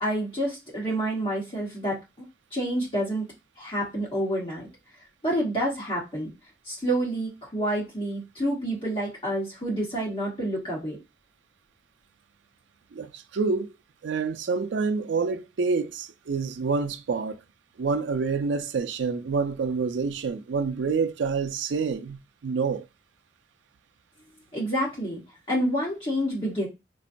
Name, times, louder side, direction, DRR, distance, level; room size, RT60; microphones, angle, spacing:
voice 1, 0.0-2.0 2.5-3.2 3.6-4.7 5.2-6.3 6.7-11.0 24.5-25.2 25.5-26.7, right 1 dB, 30° left, 1.1 m, -28 dB
voice 2, 12.9-13.7 14.0-17.4 17.8-22.8, right 4 dB, 85° right, 0.4 m, -27 dB
3.9 x 2.2 x 2.5 m
head